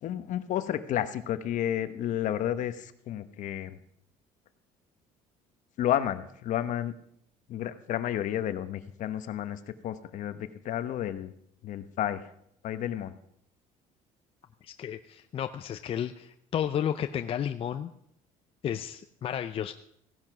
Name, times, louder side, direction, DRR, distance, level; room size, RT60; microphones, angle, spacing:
voice 1, 0.0-3.8 5.8-6.9 7.5-11.3 11.6-12.3 12.6-13.2, left 11 dB, 60° left, 11 dB, 1.1 m, -31 dB
voice 2, 14.6-17.9 18.6-19.7, left 9 dB, 40° left, 8 dB, 0.6 m, -32 dB
16.0 x 10.5 x 6.2 m, 0.72 s
cardioid pair, 125°, 15 cm